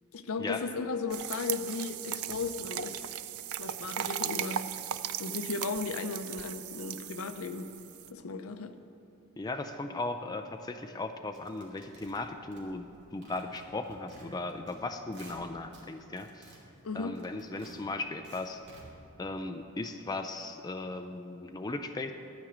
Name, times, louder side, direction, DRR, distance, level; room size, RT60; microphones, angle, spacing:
voice 1, 0.1-3.0 3.6-4.7 5.2-7.7 8.1-8.7 16.8-17.2, left 4 dB, 70° left, 9 dB, 0.6 m, -36 dB
sound 1, 1.1-8.1, right 10 dB, 75° right, 0.4 m, -37 dB
voice 2, 9.4-16.5 16.9-18.6 19.2-22.1, left 2 dB, 20° left, 6 dB, 0.4 m, -37 dB
sound 2, 11.3-13.0 13.2-14.8 15.0-15.8 16.1-18.8, right 2 dB, 55° right, 2.1 m, -54 dB
12.5 x 4.9 x 7.9 m, 2.8 s
head